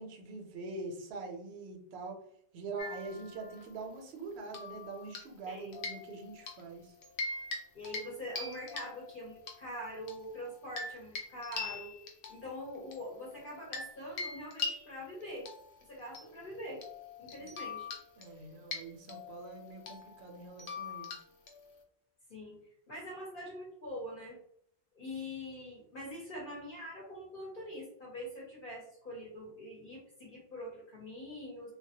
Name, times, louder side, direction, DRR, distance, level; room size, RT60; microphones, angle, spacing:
voice 1, 0.0-2.2 2.5-6.9 17.4-17.5 18.2-21.1, right 3 dB, 75° right, 2 dB, 0.8 m, -44 dB
sound 1, 2.8-3.8 4.5-5.4 5.7-6.6 7.0-7.6 7.8-8.1 8.3-9.5 10.1-13.9 14.2-21.8, left 4 dB, 80° left, 0.9 m, -43 dB
voice 2, 5.5-5.8 7.7-11.9 12.3-15.5 15.9-16.8 17.2-17.9 22.3-22.6 22.9-24.4 24.9-31.7, left 1 dB, 55° left, -4 dB, 0.9 m, -44 dB
2.2 x 2.0 x 2.7 m, 0.70 s
omnidirectional pair, 1.1 m